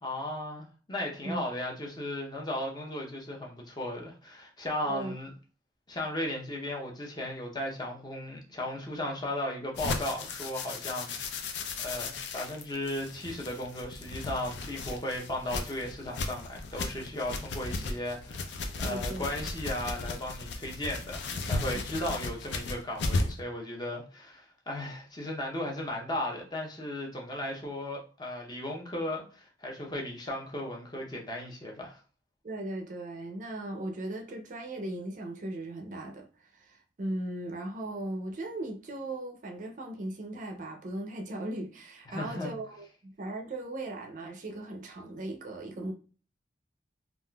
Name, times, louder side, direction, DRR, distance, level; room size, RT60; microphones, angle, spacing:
voice 1, 0.0-5.3 5.9-11.5 11.8-32.0 42.1-42.5, left 1 dB, 25° left, 0.6 m, -36 dB
voice 2, 4.8-5.1 18.8-19.3 21.7-21.8 32.4-45.9, right 1 dB, 45° right, 0.4 m, -38 dB
sound 1, 9.8-23.4, left 3 dB, 75° left, 0.5 m, -35 dB
3.5 x 2.4 x 2.2 m
head